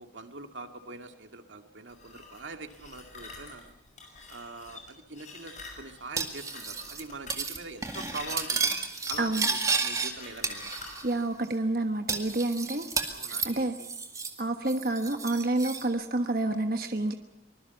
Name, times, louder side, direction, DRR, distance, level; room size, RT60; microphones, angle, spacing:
voice 1, 0.0-3.7 4.3-10.8 13.1-13.9, right 3 dB, 90° right, 6 dB, 2.2 m, -43 dB
sound 1, 1.9-11.2, left 4 dB, 40° left, 6.0 m, -46 dB
Cutlery silverware, 6.2-7.0 7.3-7.6 7.8-10.1 10.4-11.1 11.4-11.5 12.1-14.4 14.7-15.8, right 4 dB, 20° right, 2.0 m, -32 dB
voice 2, 11.0-12.9 13.4-13.7 14.4-17.1, right 2 dB, 50° right, 6 dB, 1.2 m, -28 dB
24.5 x 21.0 x 7.0 m, 0.77 s
head